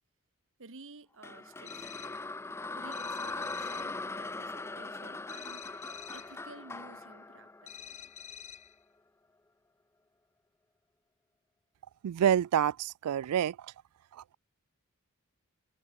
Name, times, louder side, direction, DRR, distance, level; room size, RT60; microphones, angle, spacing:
voice 1, 0.6-1.9 2.8-5.8 6.1-8.1, right 3 dB, 60° right, 1.8 m, -53 dB
sound 1, 1.2-8.4, left 3 dB, 10° left, 0.3 m, -40 dB
sound 2, 1.6-2.3 2.9-4.0 5.3-6.4 7.7-8.8, left 9 dB, 30° left, 1.0 m, -48 dB
voice 2, 12.0-13.6, right 9 dB, 80° right, 0.3 m, -27 dB
head